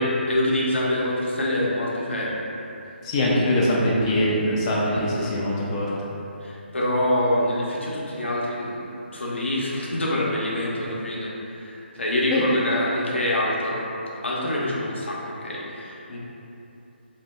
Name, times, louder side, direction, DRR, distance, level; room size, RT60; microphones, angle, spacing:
voice 1, 0.0-2.4 4.9-5.3 6.4-13.9 14.2-16.2, left 1 dB, 85° left, -5 dB, 0.6 m, -26 dB
voice 2, 3.0-5.9 12.3-12.4, left 1 dB, 30° left, -5 dB, 0.4 m, -22 dB
2.6 x 2.1 x 3.1 m, 2.8 s
figure-of-eight pair, 150°, 6 cm